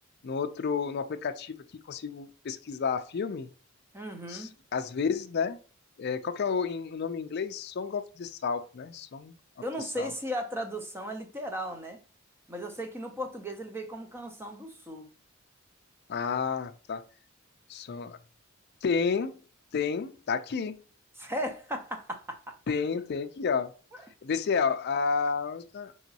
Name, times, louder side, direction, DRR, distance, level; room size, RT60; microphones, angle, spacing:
voice 1, 0.2-1.6 1.9-3.5 4.3-5.6 6.0-9.4 10.0-10.1 16.1-17.0 17.7-18.2 18.8-19.4 19.7-20.8 22.7-23.7 24.2-25.9, left 5 dB, 50° left, 0.4 m, -31 dB
voice 2, 3.9-4.5 9.6-12.0 12.5-15.1 21.2-22.5 23.9-24.0, equal, 10° right, 0.6 m, -36 dB
5.6 x 2.9 x 2.7 m
head